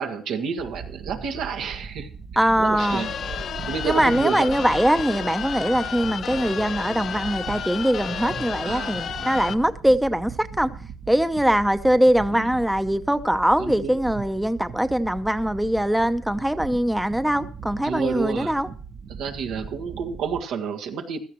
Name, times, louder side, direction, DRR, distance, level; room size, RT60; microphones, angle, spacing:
voice 1, 0.0-2.1 2.6-3.1 3.7-4.5 8.6-9.0 12.3-12.5 13.6-14.0 17.8-18.5 19.1-21.2, right 6 dB, 85° right, 1.7 m, -30 dB
sound 1, 0.6-20.4, right 5 dB, 55° right, 1.1 m, -39 dB
voice 2, 2.4-3.0 3.8-10.7 11.1-18.7, equal, 5° right, 0.8 m, -22 dB
sound 2, 2.8-9.5, left 8 dB, 65° left, 0.7 m, -32 dB
15.5 x 12.5 x 3.0 m
cardioid pair, 90°, 0 cm